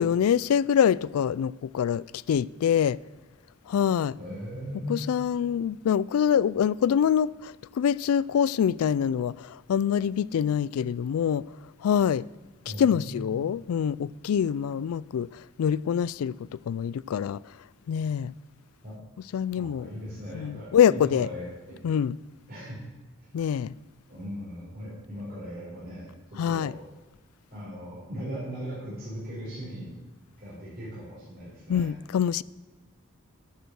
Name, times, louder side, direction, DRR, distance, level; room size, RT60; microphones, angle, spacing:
voice 1, 0.0-3.0 3.7-4.2 4.9-11.4 11.8-12.3 12.8-16.3 16.7-17.4 17.9-18.3 19.3-19.9 20.3-21.3 21.8-22.2 23.3-23.7 26.4-26.7 31.7-32.4, left 8 dB, 75° left, 0.3 m, -25 dB
voice 2, 4.2-5.1 12.7-13.3 18.8-18.9 19.6-21.8 22.5-22.8 23.4-23.5 24.1-26.8 27.5-29.9 30.4-31.9, equal, 45° right, 4.7 m, -38 dB
11.0 x 8.2 x 6.0 m
head